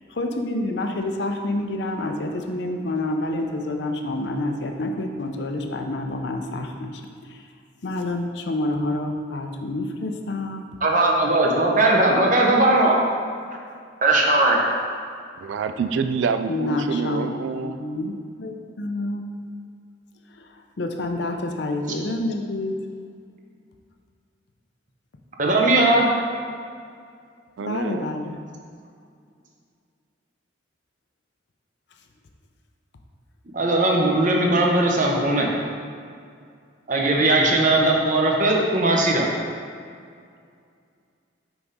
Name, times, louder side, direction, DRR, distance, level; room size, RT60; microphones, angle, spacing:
voice 1, 0.1-7.5 7.8-10.7 16.5-19.3 20.3-22.8 27.7-28.4 37.5-37.6, left 2 dB, 60° left, 4 dB, 0.6 m, -28 dB
voice 2, 10.8-12.9 14.0-14.6 25.4-26.1 33.5-35.5 36.9-39.3, right 2 dB, 40° right, -1 dB, 0.8 m, -19 dB
voice 3, 15.4-17.8 27.6-28.1, right 5 dB, 70° right, 9 dB, 0.3 m, -27 dB
6.1 x 5.2 x 3.6 m, 2.3 s
head